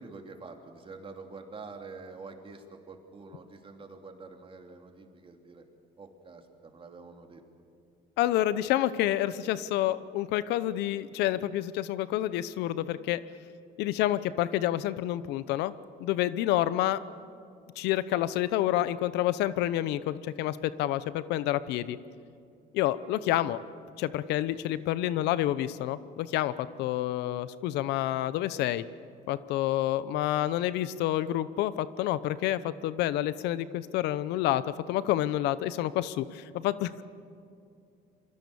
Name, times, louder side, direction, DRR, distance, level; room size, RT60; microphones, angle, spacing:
voice 1, 0.0-5.6 6.0-7.4 23.4-23.5, right 4 dB, 30° right, 4 dB, 3.0 m, -46 dB
voice 2, 8.2-13.2 13.8-15.7 16.0-17.0 17.8-22.0 22.7-23.6 24.0-28.8 29.3-34.6 34.9-37.0, left 13 dB, 90° left, 15 dB, 0.9 m, -28 dB
27.5 x 23.0 x 7.1 m, 2.5 s
cardioid pair, 110°, 17 cm